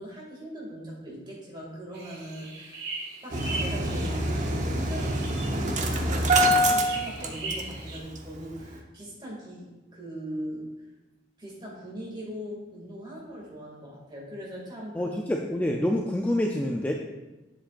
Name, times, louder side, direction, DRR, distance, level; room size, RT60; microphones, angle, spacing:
voice 1, 0.0-2.9 3.2-10.7 11.4-15.3, equal, 25° right, -4 dB, 2.3 m, -40 dB
sound 1, 1.9-8.0, right 2 dB, 60° right, 1.7 m, -40 dB
Engine starting, 3.3-7.9 8.2-8.3 8.6-8.7, right 1 dB, 40° right, 0.8 m, -25 dB
voice 2, 14.9-16.9, left 1 dB, 10° left, 1 dB, 0.4 m, -27 dB
10.0 x 7.5 x 2.5 m, 1.1 s
head